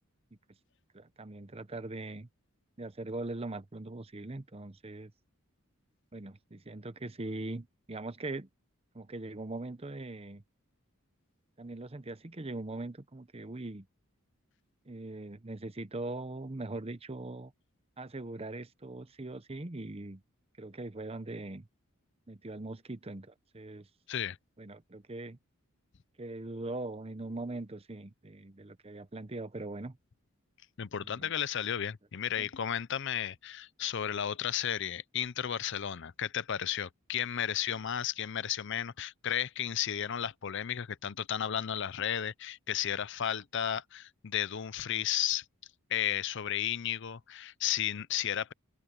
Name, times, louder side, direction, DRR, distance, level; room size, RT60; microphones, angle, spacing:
voice 1, 0.9-2.3 2.8-5.1 6.1-8.5 8.9-10.4 11.6-13.9 14.9-17.5 18.0-20.2 20.6-21.7 22.3-23.9 24.6-25.4 26.2-30.0 30.9-31.3 32.4-32.5, right 2 dB, 30° right, 0.8 m, -41 dB
voice 2, 30.8-45.4 45.9-48.5, left 10 dB, 60° left, 0.6 m, -33 dB
open air
head